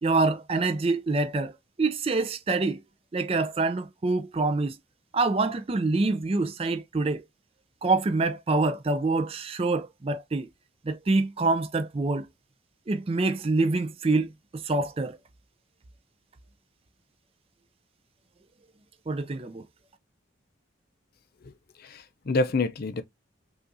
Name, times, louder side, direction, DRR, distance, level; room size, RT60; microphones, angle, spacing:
voice 1, 0.0-1.5 1.8-2.8 3.1-4.8 5.1-7.2 7.8-10.5 10.8-12.3 12.9-15.2 19.1-19.6, right 3 dB, 30° right, 0.4 m, -26 dB
voice 2, 21.4-23.0, left 3 dB, 50° left, 0.5 m, -28 dB
5.5 x 2.4 x 2.6 m
head